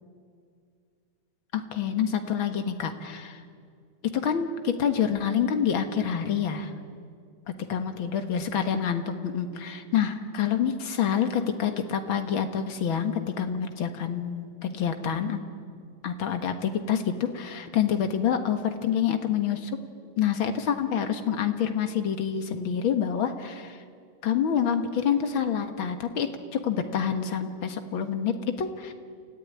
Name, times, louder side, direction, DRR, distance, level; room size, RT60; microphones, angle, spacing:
voice 1, 1.5-3.4 4.1-6.7 7.7-15.4 16.0-19.7 20.2-23.8 24.2-28.9, left 8 dB, 75° left, 7 dB, 2.3 m, -27 dB
29.5 x 14.5 x 9.5 m, 2.2 s
omnidirectional pair, 2.3 m